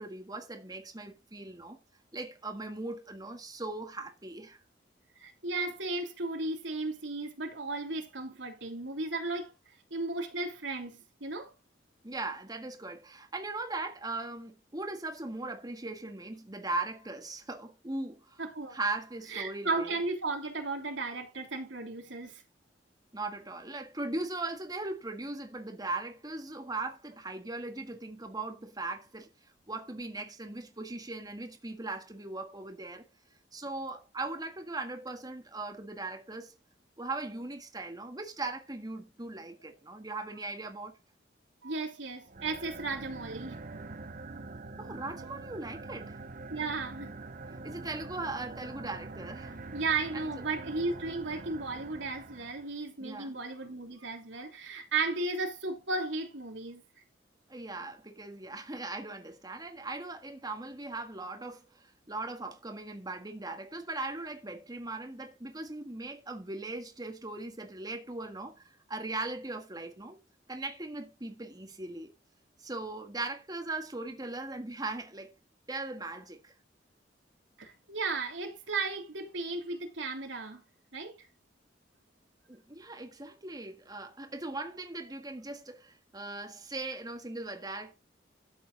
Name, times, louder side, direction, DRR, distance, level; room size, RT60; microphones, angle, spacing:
voice 1, 0.0-1.8 2.1-4.6 12.0-18.4 18.7-19.9 23.1-29.3 29.7-33.0 33.5-36.5 37.0-41.0 44.8-46.2 47.6-49.6 50.1-50.4 53.0-53.3 57.5-70.2 70.5-72.1 72.6-75.3 75.7-76.5 82.5-87.9, right 2 dB, 20° right, 1.7 m, -39 dB
voice 2, 5.2-9.5 9.9-11.5 18.4-18.8 19.3-22.4 41.6-43.6 46.5-47.1 49.7-56.8 77.6-80.6 80.9-81.1, right 3 dB, 80° right, 3.1 m, -35 dB
sound 1, 42.3-52.7, right 3 dB, 45° right, 0.9 m, -45 dB
12.5 x 7.6 x 4.0 m
head